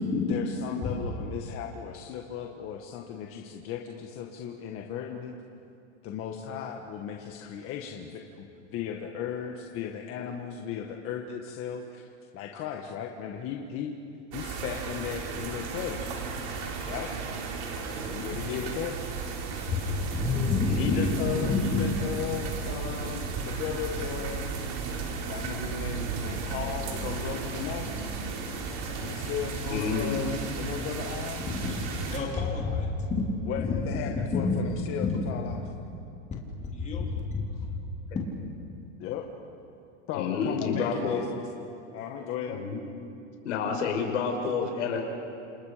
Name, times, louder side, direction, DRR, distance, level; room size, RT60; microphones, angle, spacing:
voice 1, 0.3-5.4 6.0-12.1 12.3-14.0 14.3-16.0 16.9-17.1 18.0-18.9 20.7-24.6 25.3-28.1 29.0-31.5 33.4-35.6 39.0-39.3 40.1-41.2 41.9-42.7, left 8 dB, 35° left, 2 dB, 1.7 m, -36 dB
sound 1, 14.3-32.2, right 4 dB, 50° right, 4.4 m, -34 dB
voice 2, 20.1-20.9 21.4-21.9 31.6-31.8 32.1-32.9 33.6-33.7 34.3-34.5 36.7-37.2, left 4 dB, 20° left, -2 dB, 3.9 m, -28 dB
voice 3, 20.6-21.1 29.7-30.2 40.1-41.2 42.5-42.8 43.4-45.0, left 6 dB, 85° left, 2 dB, 5.3 m, -29 dB
28.5 x 28.5 x 5.2 m, 2.6 s
supercardioid pair, 150°, 36 cm